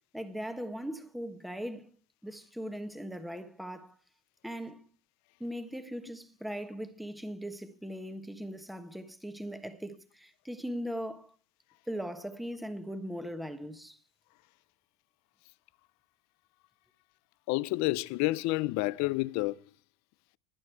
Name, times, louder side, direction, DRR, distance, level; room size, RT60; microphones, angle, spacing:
voice 1, 0.1-1.9 2.2-4.0 4.4-4.9 5.4-11.3 11.9-14.0, equal, ahead, 1.1 m, -39 dB
voice 2, 17.5-19.6, left 20 dB, 60° left, 0.6 m, -29 dB
18.5 x 10.5 x 4.6 m
cardioid pair, 155°, 31 cm